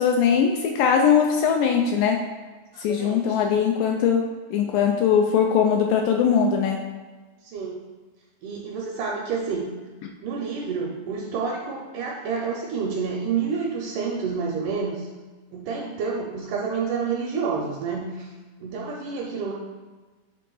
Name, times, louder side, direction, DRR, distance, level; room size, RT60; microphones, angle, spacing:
voice 1, 0.0-2.2 2.8-6.8, left 7 dB, 80° left, 2 dB, 2.0 m, -21 dB
voice 2, 2.7-3.4 7.4-7.8 8.4-9.7 10.2-15.1 15.5-18.3 18.6-19.5, right 5 dB, 80° right, -1 dB, 1.9 m, -29 dB
7.4 x 3.6 x 3.9 m, 1.3 s
omnidirectional pair, 4.2 m